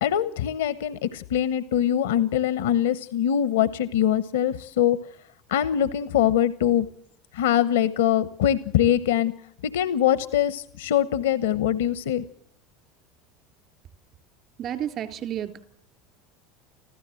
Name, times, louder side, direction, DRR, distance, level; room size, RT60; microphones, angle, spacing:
voice 1, 0.0-5.0 5.5-6.9 7.3-9.3 9.6-12.2, left 10 dB, 80° left, 14 dB, 1.0 m, -23 dB
voice 2, 14.6-15.6, right 10 dB, 50° right, 8 dB, 3.8 m, -31 dB
26.0 x 15.5 x 7.8 m, 0.68 s
hypercardioid pair, 80°, 0 cm